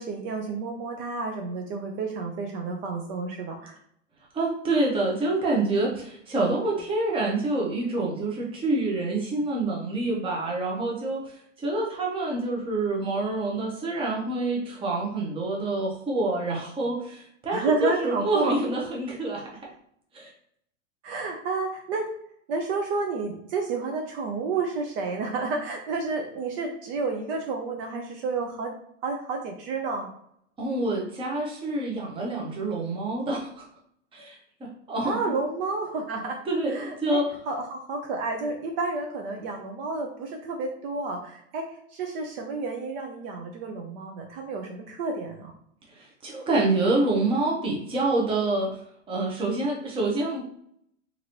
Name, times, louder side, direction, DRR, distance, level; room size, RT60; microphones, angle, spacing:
voice 1, 0.0-3.8 17.5-18.6 21.0-22.1 22.5-28.7 29.0-30.1 35.0-36.4 36.7-41.6 41.9-45.5, right 3 dB, 50° right, 2 dB, 0.6 m, -30 dB
voice 2, 4.3-19.7 20.1-20.3 30.6-33.7 34.1-35.2 36.5-37.3 45.9-48.8 49.1-50.4, right 2 dB, 15° right, -2 dB, 0.7 m, -27 dB
2.9 x 2.6 x 2.8 m, 0.68 s
hypercardioid pair, 125°, 38 cm